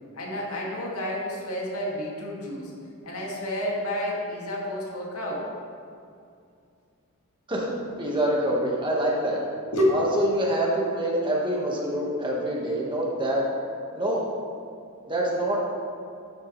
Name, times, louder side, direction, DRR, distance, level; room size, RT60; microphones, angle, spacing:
voice 1, 0.1-2.7 3.0-5.5 9.7-9.9, equal, 85° left, -3 dB, 2.2 m, -29 dB
voice 2, 7.5-9.4 9.9-13.4 13.9-14.2 15.1-15.7, right 1 dB, 20° right, -3 dB, 1.5 m, -26 dB
12.5 x 8.4 x 3.2 m, 2.4 s
head